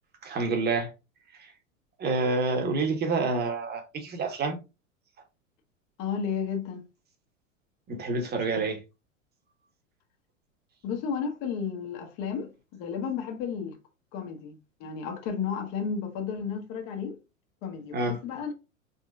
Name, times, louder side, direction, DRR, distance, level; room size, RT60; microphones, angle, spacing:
voice 1, 0.2-0.9 2.0-4.6 7.9-8.8 17.9-18.2, right 3 dB, 25° right, 1.3 m, -28 dB
voice 2, 6.0-6.8 10.8-13.8 14.1-17.2 17.6-18.5, left 6 dB, 45° left, 1.4 m, -33 dB
4.2 x 4.1 x 2.4 m
figure-of-eight pair, 90°, 39 cm